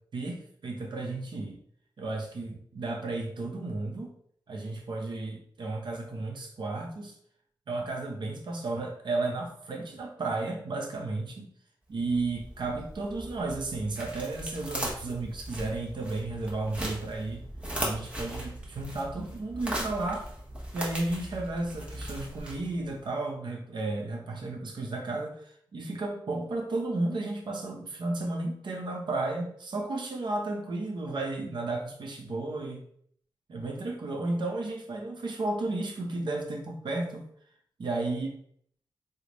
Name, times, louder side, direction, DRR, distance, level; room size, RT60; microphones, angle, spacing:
voice 1, 0.1-1.6 2.0-4.1 4.5-7.1 7.7-11.5 11.9-17.4 17.8-20.3 20.7-32.8 33.5-37.2 37.8-38.4, right 2 dB, 60° right, 2 dB, 0.7 m, -33 dB
sound 1, 11.9-23.0, right 1 dB, 15° right, 0.8 m, -38 dB
3.3 x 2.1 x 3.9 m, 0.63 s
wide cardioid pair, 140°, 9 cm